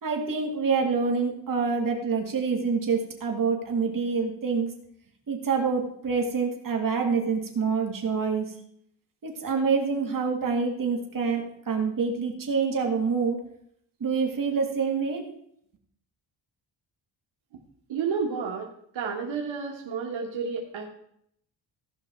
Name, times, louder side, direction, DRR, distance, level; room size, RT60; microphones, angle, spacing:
voice 1, 0.0-4.7 5.3-8.5 9.2-13.4 14.0-15.2, right 5 dB, 45° right, 2 dB, 2.2 m, -26 dB
voice 2, 17.9-18.7 18.9-20.8, right 5 dB, 90° right, -1 dB, 1.5 m, -30 dB
16.0 x 5.5 x 4.5 m, 0.69 s
wide cardioid pair, 135°, 45 cm